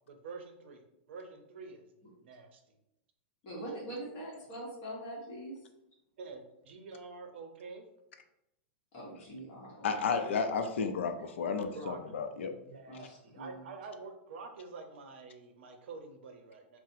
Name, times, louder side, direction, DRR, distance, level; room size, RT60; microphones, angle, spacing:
voice 1, 0.1-0.8 1.1-1.9 2.2-2.6 6.2-7.9 11.7-16.8, right 4 dB, 70° right, 5 dB, 0.6 m, -47 dB
voice 2, 3.4-5.5 8.9-10.0 12.9-13.7, right 1 dB, 40° left, -4 dB, 1.0 m, -43 dB
voice 3, 9.8-12.5, left 5 dB, 85° left, 7 dB, 0.4 m, -32 dB
4.0 x 2.0 x 2.6 m, 0.86 s
supercardioid pair, 160°, 6 cm